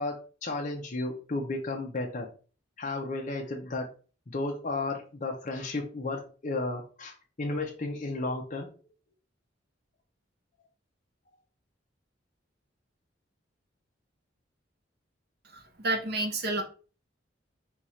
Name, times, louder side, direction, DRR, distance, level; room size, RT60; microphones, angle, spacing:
voice 1, 0.0-2.3 2.8-3.9 4.3-8.7, left 2 dB, 40° left, 1 dB, 0.7 m, -33 dB
voice 2, 15.5-16.6, right 2 dB, 55° right, 6 dB, 0.8 m, -30 dB
4.7 x 2.4 x 4.2 m, 0.37 s
head